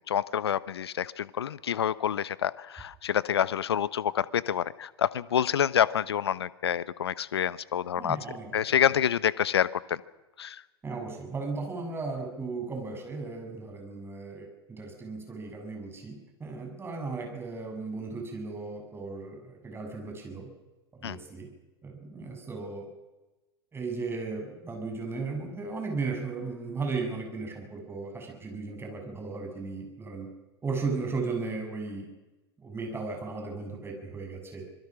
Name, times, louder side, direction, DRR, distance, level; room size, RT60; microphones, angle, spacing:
voice 1, 0.1-8.2 8.5-10.0 10.4-10.6 21.0-21.2, left 9 dB, 70° left, 19 dB, 1.0 m, -27 dB
voice 2, 8.0-8.5 10.8-20.5 21.0-21.5 21.8-22.9 23.7-30.3 30.6-32.1 32.6-34.6, right 4 dB, 15° right, 3 dB, 7.7 m, -36 dB
26.0 x 21.5 x 6.2 m, 1.1 s
figure-of-eight pair, 95°, 14 cm